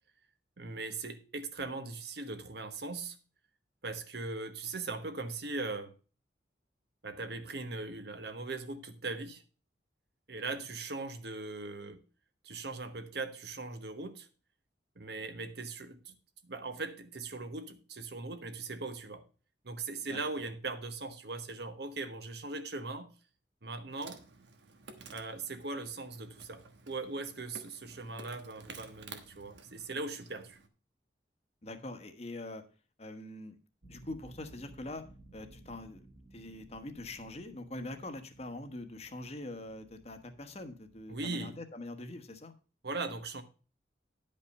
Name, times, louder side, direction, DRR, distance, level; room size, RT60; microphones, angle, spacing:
voice 1, 0.6-3.2 3.8-5.9 7.0-9.4 10.3-12.0 12.4-14.3 15.0-16.1 16.4-19.2 19.6-23.1 23.6-24.2 25.1-30.6 41.1-41.6 42.8-43.4, right 3 dB, 65° right, 1.2 m, -40 dB
Insect, 23.9-30.7, right 4 dB, 85° right, 1.2 m, -53 dB
voice 2, 31.6-32.6 33.0-33.6 33.9-35.0 35.3-36.1 36.3-42.5, left 2 dB, 35° left, 1.2 m, -43 dB
sound 1, 33.8-41.5, right 2 dB, 45° right, 2.2 m, -58 dB
10.5 x 5.4 x 5.4 m
head